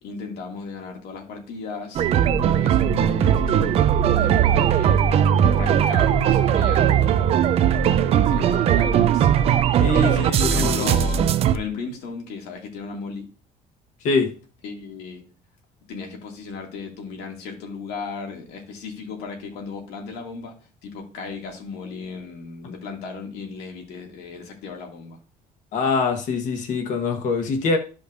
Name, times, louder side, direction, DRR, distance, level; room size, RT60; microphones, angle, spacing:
voice 1, 0.0-2.0 2.4-3.8 4.1-7.6 8.0-9.3 9.9-13.3 14.6-15.2 15.9-20.5 20.8-25.2, left 5 dB, 85° left, 2.4 m, -36 dB
sound 1, 2.0-11.6, right 9 dB, 40° right, 0.4 m, -19 dB
voice 2, 9.8-10.9 14.0-14.3 25.7-27.8, left 4 dB, 50° left, 1.4 m, -23 dB
13.0 x 5.1 x 2.6 m
cardioid pair, 175°, 16 cm